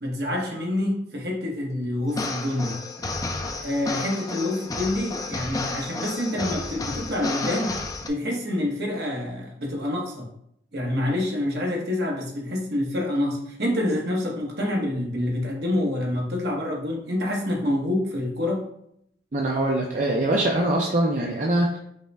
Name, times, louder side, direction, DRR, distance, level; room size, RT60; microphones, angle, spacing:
voice 1, 0.0-2.8 3.6-7.8 8.1-10.3 10.7-18.7, left 1 dB, 60° right, -1 dB, 1.0 m, -27 dB
sound 1, 2.1-8.1, left 3 dB, 20° left, 0.3 m, -31 dB
voice 2, 19.3-21.8, right 1 dB, 45° right, -1 dB, 0.5 m, -23 dB
5.3 x 2.2 x 3.3 m, 0.73 s
head